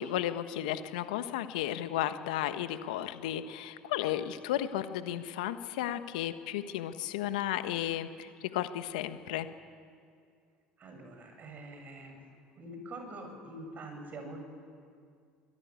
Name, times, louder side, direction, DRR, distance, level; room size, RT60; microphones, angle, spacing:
voice 1, 0.0-9.5, left 12 dB, 80° left, 10 dB, 1.3 m, -34 dB
voice 2, 10.8-12.2 12.6-14.6, right 1 dB, 40° right, 5 dB, 6.8 m, -45 dB
24.5 x 16.5 x 9.6 m, 2.2 s
hypercardioid pair, 75°, 4 cm